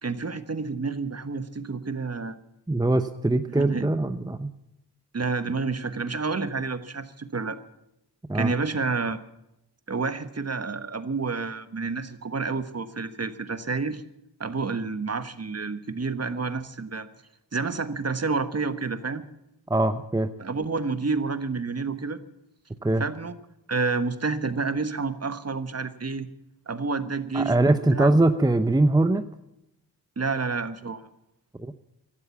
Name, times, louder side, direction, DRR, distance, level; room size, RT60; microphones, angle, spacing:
voice 1, 0.0-2.4 3.5-3.9 5.1-7.6 8.3-9.2 9.9-14.0 14.4-17.1 17.5-19.2 20.4-22.2 23.0-23.4 23.7-26.3 26.7-28.1 30.2-31.1, right 4 dB, 35° right, 11 dB, 1.3 m, -29 dB
voice 2, 2.7-4.5 8.3-8.5 19.7-20.3 22.8-23.0 27.3-29.2 31.6-31.7, right 2 dB, 10° right, 10 dB, 0.8 m, -22 dB
16.0 x 12.5 x 7.2 m, 0.86 s
cardioid pair, 55°, 43 cm